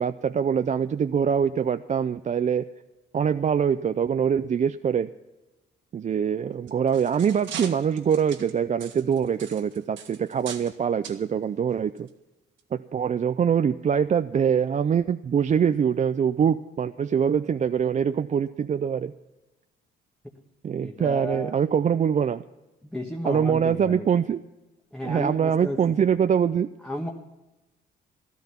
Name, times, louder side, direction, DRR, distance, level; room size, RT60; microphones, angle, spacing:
voice 1, 0.0-2.7 3.1-5.1 5.9-12.1 12.7-19.1 20.6-22.4 23.2-24.4 25.0-26.7, right 7 dB, 35° right, 10 dB, 0.5 m, -24 dB
sound 1, 6.5-10.7 11.0-11.2 12.0-12.1 12.6-12.7, right 8 dB, 75° right, 1.5 m, -40 dB
voice 2, 20.8-21.5 22.8-24.1 24.9-26.0 26.8-27.1, equal, 5° left, 0 dB, 1.4 m, -33 dB
13.5 x 13.5 x 5.8 m, 1.1 s
cardioid pair, 90°, 20 cm